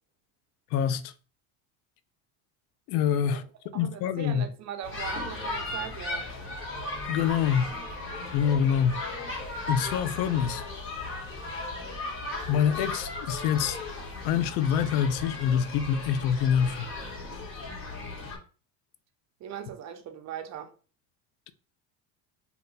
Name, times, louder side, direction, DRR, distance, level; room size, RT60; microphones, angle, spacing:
voice 1, 0.7-1.1 2.9-3.4 3.7-4.5 7.1-7.8 8.3-9.0 9.7-10.6 12.5-13.8 14.2-16.9, left 8 dB, 70° left, 0.5 m, -25 dB
voice 2, 3.7-6.3 19.4-20.7, right 9 dB, 40° right, 0.6 m, -39 dB
sound 1, 4.8-18.4, left 2 dB, 30° left, 1.3 m, -36 dB
2.8 x 2.2 x 3.9 m
supercardioid pair, 105°, 41 cm